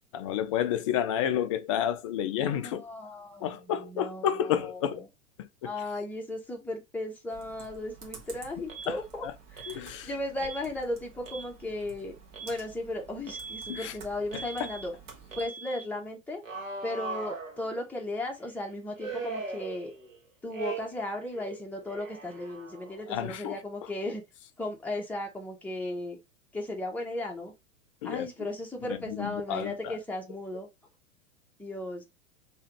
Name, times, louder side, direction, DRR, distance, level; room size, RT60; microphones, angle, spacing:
voice 1, 0.1-2.8 3.4-5.1 5.4-5.7 8.9-9.3 9.7-10.1 13.7-14.0 14.3-14.7 23.1-23.9 28.0-28.5 28.9-30.0, left 10 dB, 25° left, 0.4 m, -31 dB
voice 2, 2.5-4.2 4.5-4.8 5.6-9.2 9.5-12.1 12.4-14.9 15.4-16.4 16.8-19.9 20.4-24.2 24.6-26.2 26.5-27.5 28.0-30.7 31.6-32.0, left 1 dB, 5° left, 1.0 m, -36 dB
Computer keyboard, 7.3-15.5, right 5 dB, 40° right, 1.5 m, -51 dB
Alarm, 8.7-8.9 9.6-9.8 10.4-10.6 11.1-11.5 12.3-12.6 13.3-13.9 14.3-14.9 15.3-15.8 16.4-18.0 19.0-20.2 20.5-21.1 21.3-23.0, right 4 dB, 75° right, 1.4 m, -40 dB
5.5 x 3.1 x 3.0 m
figure-of-eight pair, 95°, 39 cm